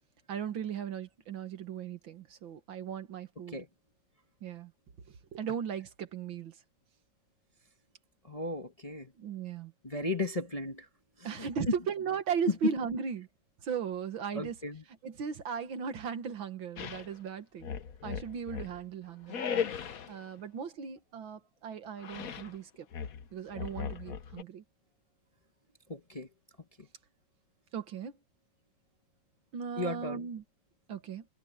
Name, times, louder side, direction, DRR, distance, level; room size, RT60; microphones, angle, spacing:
voice 1, 0.3-3.6 4.4-4.7 5.1-6.6 9.2-9.7 11.2-13.3 13.6-14.6 15.0-17.7 18.0-19.4 20.1-22.9 23.3-24.6 27.7-28.1 29.5-30.4 30.9-31.3, right 7 dB, 75° right, 2.2 m, -37 dB
voice 2, 8.2-9.1 9.8-10.9 11.2-11.5 12.6-12.7 14.3-14.8 25.9-26.3 29.8-30.2, left 2 dB, 20° left, 1.0 m, -35 dB
sound 1, 16.8-17.1 17.6-18.8 19.3-20.2 22.0-22.5 22.9-24.4, left 7 dB, 50° left, 1.3 m, -37 dB
omnidirectional pair, 2.2 m